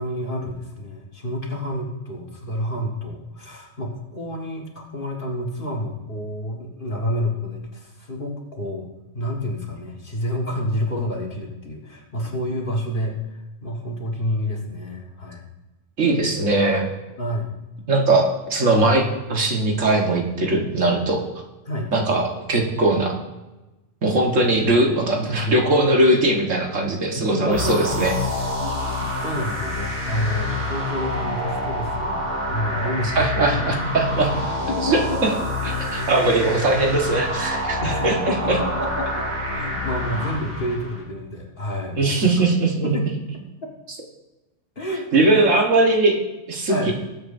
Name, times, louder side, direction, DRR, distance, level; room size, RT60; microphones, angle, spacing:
voice 1, 0.0-8.9 9.1-13.2 13.6-15.4 17.2-17.5 21.7-21.9 27.2-27.9 28.6-33.9 34.1-34.3 34.7-35.4 36.4-36.5 37.8-42.3 42.8-43.1 44.8-45.1 46.7-46.9, equal, 45° left, -1 dB, 1.9 m, -29 dB
voice 2, 16.0-16.9 17.9-21.2 21.9-23.2 24.0-28.1 33.2-34.3 34.8-35.0 35.6-38.6 42.0-43.0 45.1-46.2 46.5-46.9, right 2 dB, 80° right, 1 dB, 1.8 m, -20 dB
sound 1, 27.5-41.0, left 1 dB, 55° right, 4.5 m, -27 dB
19.5 x 7.8 x 2.7 m, 1.1 s
omnidirectional pair, 1.3 m